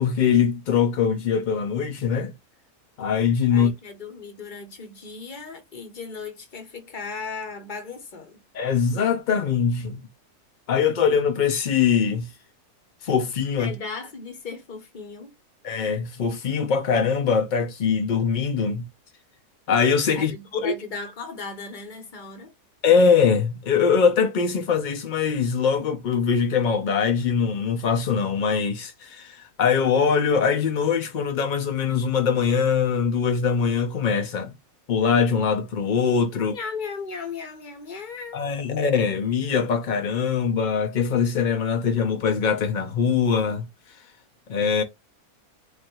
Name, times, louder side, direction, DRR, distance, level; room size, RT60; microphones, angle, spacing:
voice 1, 0.0-2.3 3.0-3.7 8.5-10.0 10.7-12.3 13.0-13.7 15.6-18.8 19.7-20.3 20.6-20.7 22.8-34.6 34.9-36.5 38.3-43.6 44.5-44.8, left 6 dB, 75° left, 0.4 m, -22 dB
voice 2, 3.5-8.4 13.6-15.3 20.1-22.5 36.3-38.5, left 4 dB, 40° left, 0.8 m, -36 dB
3.1 x 2.6 x 4.4 m
omnidirectional pair, 1.6 m